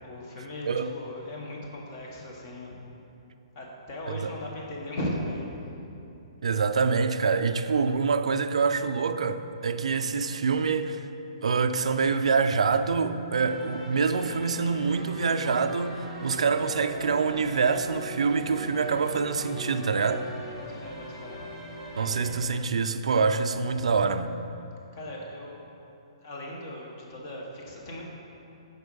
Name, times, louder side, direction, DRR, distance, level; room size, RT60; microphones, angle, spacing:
voice 1, 0.0-2.8 3.5-5.5 20.6-21.5 23.7-24.0 24.9-25.6 26.2-28.0, left 1 dB, 30° left, 1.2 m, -38 dB
voice 2, 6.4-11.1 11.4-20.3 22.0-24.4, right 5 dB, 90° right, 0.5 m, -26 dB
sound 1, 13.4-22.4, equal, 5° left, 1.7 m, -41 dB
7.9 x 5.4 x 5.4 m
hypercardioid pair, 175°, 3 cm